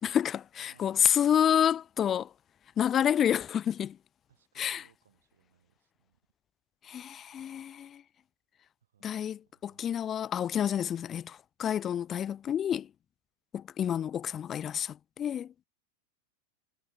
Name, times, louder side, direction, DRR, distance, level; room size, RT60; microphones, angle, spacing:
voice 1, 0.0-2.3 2.8-4.0 4.6-4.8 6.9-8.0 9.0-12.9 13.5-15.5, left 9 dB, 25° left, 0.3 m, -29 dB
voice 2, 0.7-1.5 4.3-6.2 8.8-10.1 12.5-12.7, right 9 dB, 65° right, 3.9 m, -67 dB
figure-of-eight pair, 90°, 0 cm